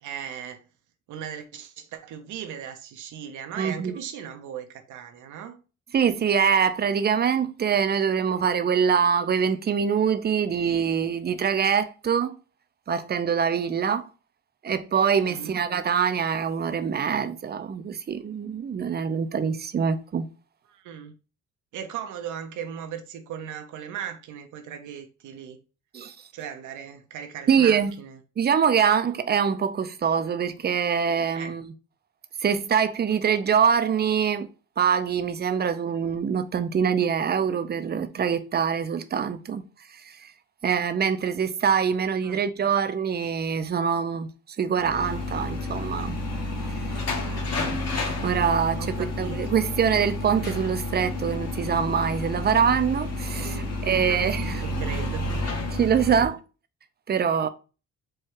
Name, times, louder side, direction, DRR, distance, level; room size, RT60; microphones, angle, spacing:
voice 1, 0.0-0.6 1.1-5.6 15.3-15.6 20.7-21.1 21.7-25.6 26.3-28.2 31.3-31.5 42.2-42.4 47.1-47.6 48.8-49.5 53.4-55.2 56.1-56.3, right 8 dB, 80° right, 0.7 m, -38 dB
voice 2, 3.6-4.0 5.9-12.3 12.9-14.1 14.6-20.3 25.9-26.2 27.5-28.0 28.4-31.7 32.4-34.5 34.8-39.6 40.0-40.3 40.6-44.3 44.6-46.2 48.2-54.6 55.7-56.4 57.1-57.5, right 7 dB, 35° right, 0.5 m, -24 dB
sound 1, 44.8-56.3, left 2 dB, 55° left, 1.6 m, -30 dB
4.5 x 2.3 x 4.5 m
cardioid pair, 90°, 30 cm